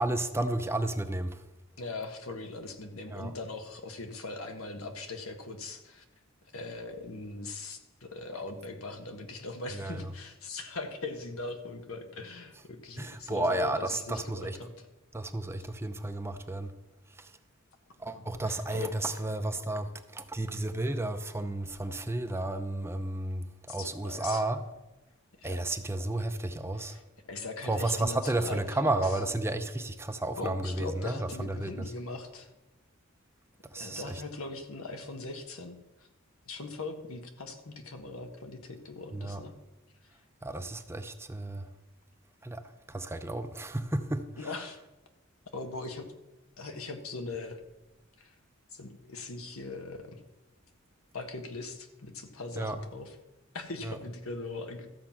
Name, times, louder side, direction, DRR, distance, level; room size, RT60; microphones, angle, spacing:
voice 1, 0.0-1.4 3.1-3.3 9.7-10.0 13.0-14.6 15.1-16.7 17.2-17.3 18.0-24.7 25.4-27.0 27.7-31.9 33.7-34.1 39.1-39.4 40.4-41.7 42.4-42.6 42.9-44.2 52.6-52.8 53.9-54.0, right 2 dB, 10° right, 0.6 m, -32 dB
voice 2, 1.8-6.0 6.5-14.9 18.1-18.9 23.7-24.4 25.4-25.7 26.7-27.0 27.3-29.2 30.4-32.5 33.7-35.8 36.5-39.5 44.4-44.8 45.5-46.1 46.6-47.6 48.2-48.3 48.7-50.2 51.1-53.2 53.5-54.9, left 3 dB, 85° left, 1.5 m, -40 dB
13.5 x 7.5 x 5.8 m
head